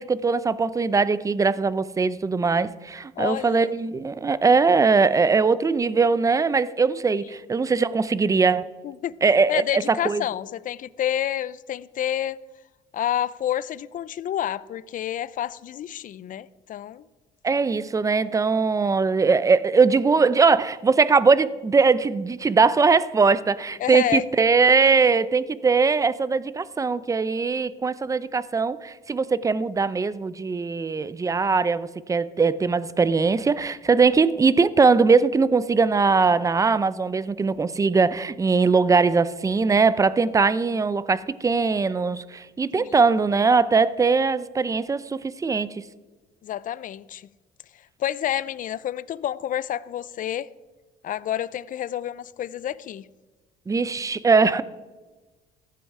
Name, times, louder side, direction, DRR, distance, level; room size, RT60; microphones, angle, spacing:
voice 1, 0.0-8.7 9.2-10.2 17.4-45.9 53.7-54.6, right 4 dB, 15° right, 0.6 m, -21 dB
voice 2, 3.2-3.7 8.8-9.2 9.5-12.4 12.9-17.1 23.8-24.3 42.7-43.0 46.4-47.3 48.0-50.5 51.0-53.1, left 11 dB, 45° left, 0.5 m, -29 dB
15.5 x 11.0 x 4.8 m
cardioid pair, 110°, 19 cm